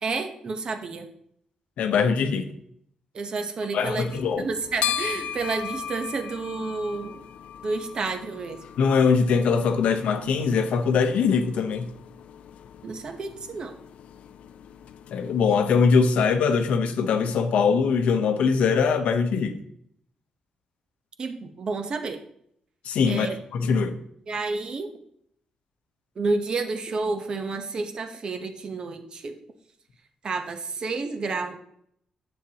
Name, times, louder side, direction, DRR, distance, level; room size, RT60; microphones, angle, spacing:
voice 1, 0.0-1.1 3.1-4.1 4.4-7.2 7.6-8.6 12.8-13.7 21.2-22.2 23.1-23.4 24.3-24.9 26.2-29.4 30.2-31.6, right 3 dB, 40° right, 7 dB, 0.9 m, -30 dB
voice 2, 1.8-2.5 3.7-4.4 8.8-11.9 15.1-19.6 22.8-23.3 23.5-24.0, left 5 dB, 85° left, 8 dB, 0.9 m, -22 dB
sound 1, 3.8-16.3, left 9 dB, 70° left, 0.4 m, -38 dB
9.9 x 7.4 x 2.9 m, 0.70 s
wide cardioid pair, 155°, 2 cm